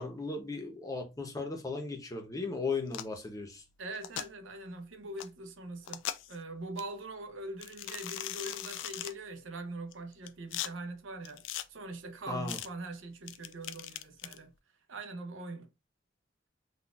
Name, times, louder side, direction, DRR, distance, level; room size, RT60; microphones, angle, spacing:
voice 1, 0.0-3.6 12.3-12.6, left 3 dB, 20° left, 0.7 m, -36 dB
sound 1, 2.9-3.2 3.9-4.3 5.2-5.3 5.8-6.4 6.8-6.9 7.6-9.1 9.9-10.7 11.2-11.6 12.5-12.7 13.3-14.4, left 12 dB, 75° left, 0.3 m, -39 dB
voice 2, 3.8-6.0 6.3-14.5 14.9-15.7, right 2 dB, 85° right, 0.7 m, -42 dB
4.0 x 2.4 x 2.3 m
head